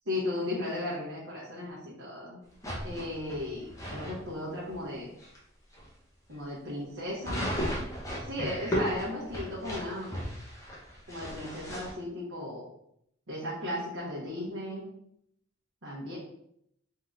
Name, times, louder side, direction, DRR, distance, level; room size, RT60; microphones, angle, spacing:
voice 1, 0.1-2.4 2.8-5.1 6.3-7.4 8.3-10.2 11.1-12.6 13.3-14.8 15.8-16.2, left 1 dB, 85° right, -6 dB, 1.1 m, -36 dB
sound 1, 2.6-4.2 4.7-4.8 5.2-5.4 5.7-5.9 7.2-11.9, equal, 15° left, 0.7 m, -35 dB
3.7 x 2.8 x 3.8 m, 0.74 s
head